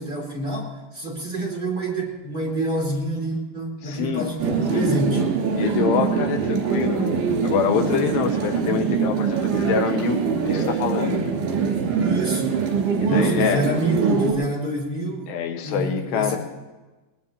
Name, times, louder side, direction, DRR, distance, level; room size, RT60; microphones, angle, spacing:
voice 1, 0.0-5.2 12.0-12.6 13.1-15.3 15.6-16.4, right 1 dB, 20° right, -2 dB, 1.8 m, -27 dB
voice 2, 3.8-4.3 4.7-5.0 5.5-7.1 7.4-11.4 13.0-13.7 15.3-16.4, left 7 dB, 90° left, 5 dB, 3.4 m, -25 dB
sound 1, 4.4-14.3, right 6 dB, 80° right, 5.0 m, -23 dB
20.5 x 19.5 x 2.9 m, 1.2 s
omnidirectional pair, 4.9 m